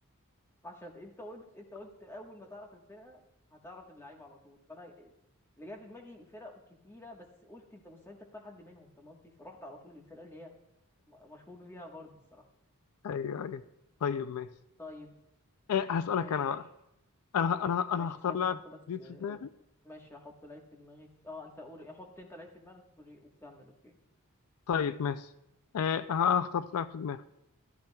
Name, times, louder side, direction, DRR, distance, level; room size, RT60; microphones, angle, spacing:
voice 1, 0.6-3.2 3.5-5.1 5.6-6.5 6.8-10.5 11.0-12.4 14.8-15.2 16.1-16.7 17.9-19.5 19.8-24.0, left 1 dB, 10° left, 1 dB, 1.3 m, -49 dB
voice 2, 13.0-13.6 14.0-14.5 15.7-16.6 17.3-18.6 18.9-19.5 24.7-25.2 25.7-27.2, left 7 dB, 80° left, 13 dB, 0.4 m, -30 dB
13.5 x 13.0 x 2.3 m, 0.86 s
head